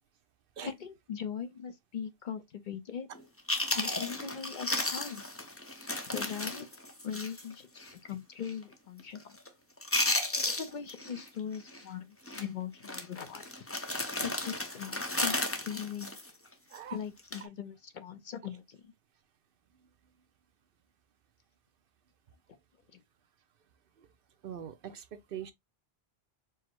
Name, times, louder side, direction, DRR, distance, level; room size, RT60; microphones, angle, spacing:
voice 1, 0.6-3.1 3.7-5.2 6.1-6.7 7.0-9.4 10.3-13.4 14.2-16.2 16.9-18.9 22.9-23.0, left 8 dB, 55° left, 0.7 m, -40 dB
Chewing mastication, 3.1-3.2 3.5-7.5 7.8-7.9 8.4-8.7 9.0-9.5 9.8-11.3 11.5-11.8 12.3-12.4 12.8-16.8 17.2-17.4, left 2 dB, 15° left, 0.6 m, -34 dB
voice 2, 24.4-25.5, right 9 dB, 65° right, 0.8 m, -42 dB
4.6 x 2.0 x 4.4 m
omnidirectional pair, 1.0 m